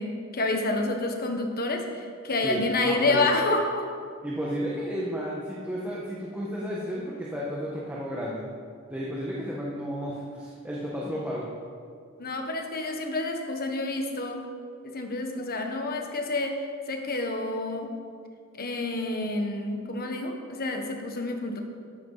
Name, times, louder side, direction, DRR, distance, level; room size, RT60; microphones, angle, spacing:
voice 1, 0.0-3.9 12.2-14.4 14.8-16.5 16.9-17.9 18.5-21.6, left 2 dB, 45° left, 3 dB, 1.3 m, -28 dB
voice 2, 2.4-3.3 4.2-8.4 8.9-11.4, equal, 10° right, -5 dB, 1.4 m, -32 dB
13.0 x 11.0 x 4.1 m, 2.2 s
head